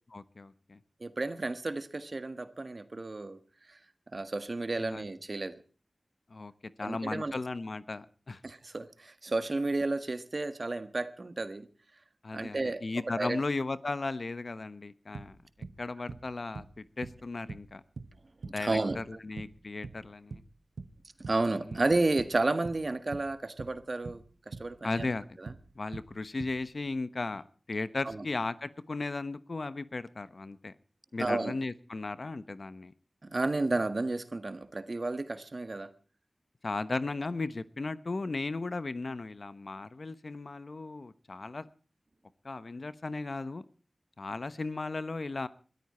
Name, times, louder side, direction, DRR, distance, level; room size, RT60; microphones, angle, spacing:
voice 1, 0.1-0.8 4.8-5.0 6.3-6.5 6.8-8.4 12.2-15.4 15.8-17.8 18.4-20.4 21.7-21.8 24.8-25.2 25.7-30.7 31.1-32.9 36.6-41.7 42.4-43.6 44.2-45.5, left 3 dB, 65° left, 15 dB, 1.0 m, -36 dB
voice 2, 1.0-3.4 3.7-3.8 4.1-5.6 6.8-7.3 8.4-11.7 12.3-13.4 18.6-19.0 21.3-25.1 25.4-25.5 28.0-28.2 31.2-31.5 33.2-35.9, right 2 dB, 55° right, 12 dB, 1.7 m, -32 dB
sound 1, 15.1-15.8 16.1-16.3 16.5-17.2 17.5-18.6 18.9-19.6 19.8-20.5 20.8-21.0 21.2-21.9 22.2-23.3 23.6-24.7 25.0-26.1 26.4-26.9, right 4 dB, 90° right, 1.2 m, -43 dB
22.0 x 13.5 x 4.4 m, 0.40 s
cardioid pair, 45°, 0 cm